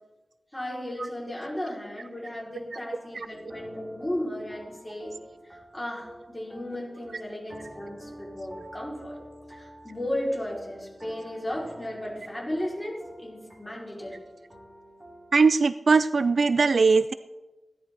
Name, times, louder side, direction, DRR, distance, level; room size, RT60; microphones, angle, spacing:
voice 1, 0.5-5.1 5.5-9.2 9.5-14.2, left 1 dB, 15° left, -5 dB, 5.1 m, -35 dB
sound 1, 3.3-15.4, right 1 dB, 20° right, 2.7 m, -49 dB
voice 2, 15.3-17.1, right 4 dB, 85° right, 13 dB, 0.3 m, -20 dB
16.5 x 11.0 x 4.0 m, 1.1 s
wide cardioid pair, 65°, 0 cm